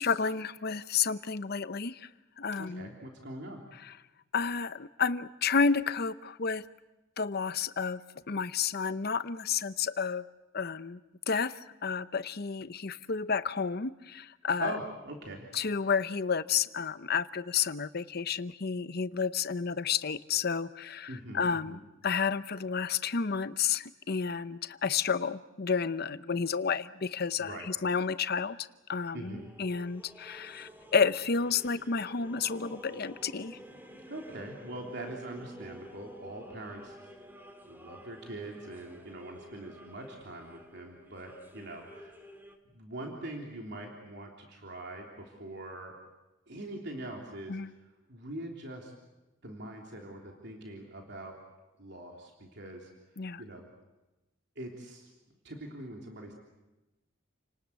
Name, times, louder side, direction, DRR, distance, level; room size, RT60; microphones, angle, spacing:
voice 1, 0.0-2.1 2.4-2.9 3.8-3.9 4.3-6.6 7.2-10.2 10.5-11.0 11.3-14.7 15.5-33.6 47.5-47.7 53.2-53.4, left 6 dB, 50° left, 14 dB, 0.8 m, -31 dB
voice 2, 2.6-3.6 14.6-15.4 21.1-21.8 27.4-27.7 29.1-29.5 34.1-37.0 37.6-42.2 42.7-45.9 46.5-47.6 48.1-48.9 49.4-51.4 51.8-52.9 53.4-53.7 54.5-55.1 55.4-56.3, right 1 dB, 60° right, 1 dB, 3.4 m, -42 dB
sound 1, 29.2-42.6, equal, 10° right, 2.1 m, -51 dB
30.0 x 19.0 x 8.2 m, 1.0 s
head